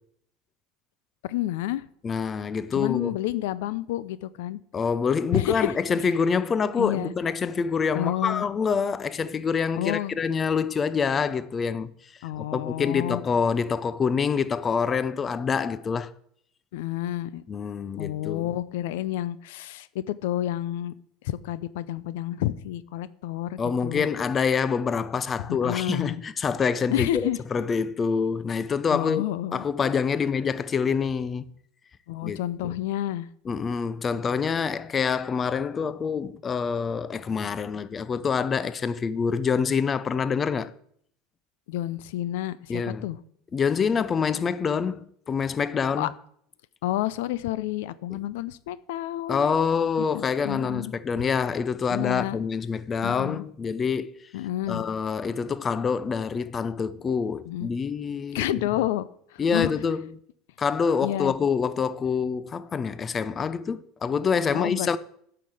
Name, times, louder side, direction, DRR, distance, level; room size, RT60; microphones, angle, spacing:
voice 1, 1.2-1.8 2.8-4.6 5.3-5.7 6.8-7.1 7.9-8.4 9.7-10.2 12.2-13.2 16.7-17.4 18.0-20.9 21.2-24.1 25.5-26.2 26.9-27.4 28.9-29.6 32.1-33.3 41.7-43.2 46.0-46.1 46.8-49.5 50.1-50.9 51.9-52.4 53.0-53.4 54.3-54.8 57.5-57.7 58.3-59.7 61.0-61.3 64.5-65.0, left 14 dB, 80° left, 0.5 m, -29 dB
voice 2, 2.0-3.1 4.7-12.1 12.4-16.1 17.5-18.5 23.6-29.2 29.5-31.4 32.2-32.7 33.5-40.7 42.7-43.0 43.5-46.1 49.3-54.1 54.7-58.6 59.4-60.0 60.6-65.0, left 6 dB, 25° left, 0.5 m, -26 dB
8.4 x 5.8 x 7.8 m
supercardioid pair, 120°, 0 cm